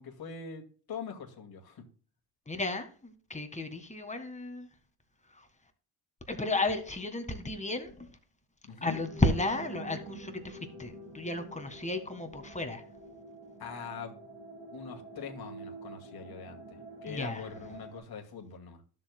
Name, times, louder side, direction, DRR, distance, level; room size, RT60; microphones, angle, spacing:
voice 1, 0.0-1.8 8.6-9.0 13.6-14.2 14.7-18.8, left 6 dB, 55° left, 2.2 m, -43 dB
voice 2, 2.5-4.7 5.3-5.5 6.3-8.1 8.8-12.8 17.1-17.5, left 2 dB, 15° left, 1.7 m, -33 dB
sound 1, 8.8-18.0, right 2 dB, 85° right, 4.6 m, -47 dB
12.5 x 7.4 x 2.2 m
cardioid pair, 85°, 46 cm